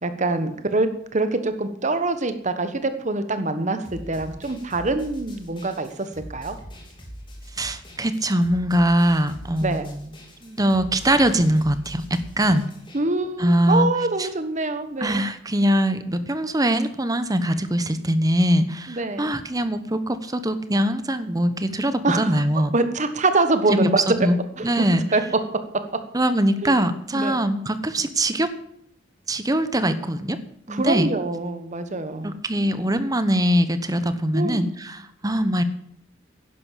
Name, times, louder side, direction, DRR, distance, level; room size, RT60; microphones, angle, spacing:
voice 1, 0.0-6.6 9.6-9.9 12.9-15.2 18.9-19.3 22.0-22.4 22.7-24.0 24.6-24.8 25.1-25.2 26.6-26.8 27.1-27.4 30.7-32.4 34.3-34.6, right 2 dB, 40° right, 9 dB, 1.3 m, -24 dB
sound 1, 3.8-13.0, equal, 25° left, 3.2 m, -42 dB
voice 2, 7.6-10.0 10.4-12.6 13.4-13.9 14.2-14.3 15.0-22.7 23.7-24.4 24.6-25.0 26.1-28.5 29.3-30.4 30.7-31.1 32.2-35.6, right 1 dB, 20° right, 11 dB, 1.0 m, -22 dB
11.0 x 11.0 x 7.4 m, 0.69 s
head